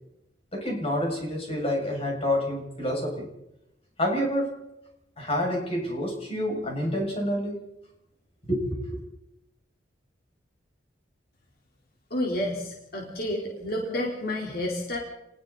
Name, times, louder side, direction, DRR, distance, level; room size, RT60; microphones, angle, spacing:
voice 1, 0.5-3.3 4.0-4.6 5.2-7.6 8.4-9.0, left 1 dB, 35° left, 7.0 m, -28 dB
voice 2, 12.1-15.0, left 1 dB, 55° left, 4.0 m, -30 dB
30.0 x 21.0 x 4.2 m
head